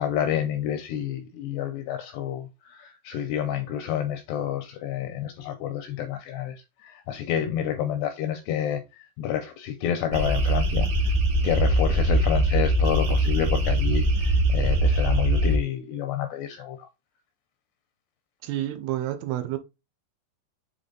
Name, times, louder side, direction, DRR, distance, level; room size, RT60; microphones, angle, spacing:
voice 1, 0.0-8.8 9.2-11.1 11.4-16.9, left 10 dB, 85° left, 2.4 m, -29 dB
sound 1, 10.1-15.6, right 1 dB, 60° right, 2.3 m, -22 dB
voice 2, 18.4-19.6, right 13 dB, 85° right, 3.4 m, -29 dB
8.1 x 3.8 x 3.8 m
omnidirectional pair, 5.5 m